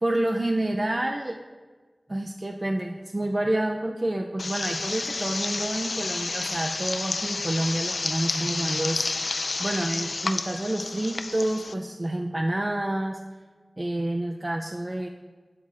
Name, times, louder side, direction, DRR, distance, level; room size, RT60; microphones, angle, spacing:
voice 1, 0.0-1.4 2.1-9.3 9.6-13.2 13.8-15.1, right 1 dB, 35° right, 3 dB, 0.4 m, -28 dB
sound 1, 4.4-11.7, left 3 dB, 80° left, 0.3 m, -30 dB
11.5 x 7.2 x 2.4 m, 1.4 s
wide cardioid pair, 60°, 0 cm